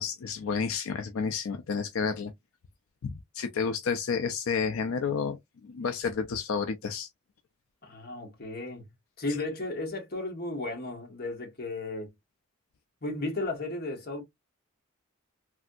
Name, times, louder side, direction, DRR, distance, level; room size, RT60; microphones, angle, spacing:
voice 1, 0.0-2.3 3.0-7.1, left 6 dB, 80° left, 0.4 m, -31 dB
voice 2, 7.8-8.8 9.2-12.1 13.0-14.2, left 2 dB, 45° left, 1.2 m, -34 dB
3.3 x 2.6 x 2.3 m
head